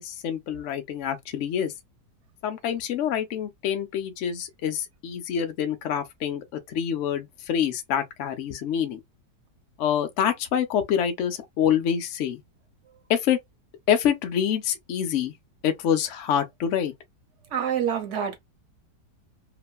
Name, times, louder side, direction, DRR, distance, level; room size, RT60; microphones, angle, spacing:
voice 1, 0.0-1.7 2.4-9.0 9.8-12.4 13.1-13.4 13.9-15.3 15.6-16.9, left 9 dB, 65° left, 0.7 m, -26 dB
voice 2, 17.5-18.4, right 8 dB, 55° right, 0.9 m, -26 dB
3.0 x 2.2 x 2.3 m
omnidirectional pair, 1.9 m